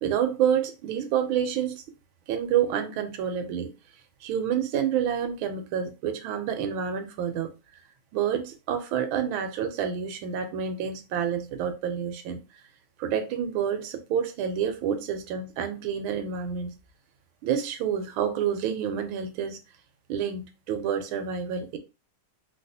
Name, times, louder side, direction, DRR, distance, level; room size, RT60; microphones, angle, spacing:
voice 1, 0.0-1.8 2.3-3.7 4.2-7.5 8.1-12.4 13.0-16.8 17.4-19.6 20.1-21.8, right 8 dB, 90° right, 1.4 m, -28 dB
4.0 x 2.3 x 2.6 m
omnidirectional pair, 2.2 m